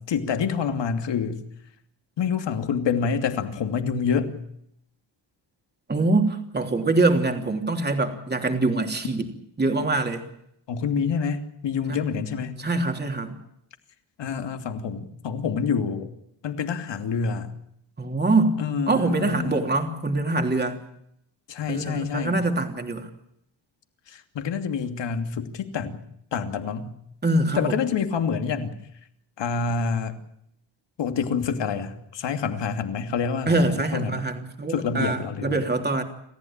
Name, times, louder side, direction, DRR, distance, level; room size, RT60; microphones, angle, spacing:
voice 1, 0.0-1.4 2.2-4.3 10.7-12.5 14.2-16.1 16.4-17.5 18.6-19.5 21.5-22.4 24.1-26.0 26.3-26.9 27.5-28.8 29.4-30.2 31.0-34.2 34.7-35.6, left 6 dB, 65° left, 7 dB, 2.8 m, -27 dB
voice 2, 5.9-9.2 9.6-10.2 11.9-12.0 12.6-13.4 18.0-20.8 21.7-23.1 27.2-27.8 33.5-36.0, right 2 dB, 20° right, 4 dB, 3.3 m, -24 dB
28.5 x 15.0 x 8.9 m, 0.74 s
cardioid pair, 125°, 46 cm